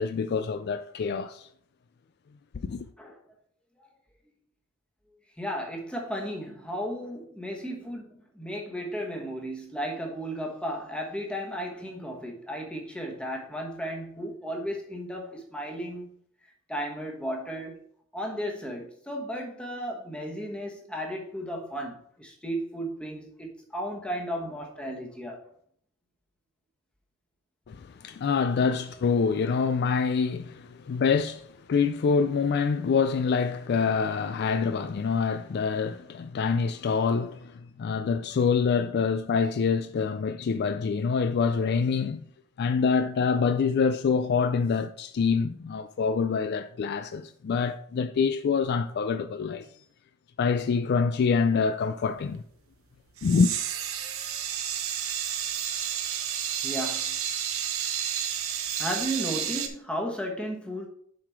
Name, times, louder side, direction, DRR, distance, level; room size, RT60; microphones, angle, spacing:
voice 1, 0.0-1.5 2.6-2.9 27.7-42.2 42.6-49.7 50.4-52.4 53.2-53.5, left 5 dB, 50° left, 0.3 m, -26 dB
voice 2, 5.4-16.1 16.7-17.8 18.1-25.4 56.6-57.1 58.8-60.9, equal, 5° left, 1.2 m, -34 dB
sound 1, 53.2-59.7, right 9 dB, 65° right, 0.9 m, -31 dB
7.3 x 4.9 x 4.5 m
head